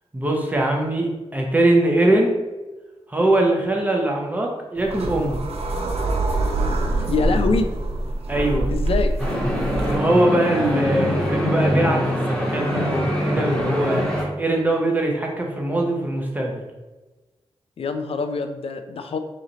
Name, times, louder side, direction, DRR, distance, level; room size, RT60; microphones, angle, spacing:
voice 1, 0.1-2.4 3.1-5.4 8.3-8.7 9.8-16.6, right 1 dB, 15° right, 0 dB, 0.8 m, -22 dB
sound 1, 4.8-10.0, right 2 dB, 75° right, 0.7 m, -24 dB
voice 2, 7.1-7.7 8.7-9.1 17.8-19.2, left 4 dB, 65° left, 7 dB, 0.4 m, -24 dB
sound 2, 9.2-14.2, equal, 5° left, 1.2 m, -23 dB
4.1 x 3.0 x 3.9 m, 1.2 s
wide cardioid pair, 140°, 11 cm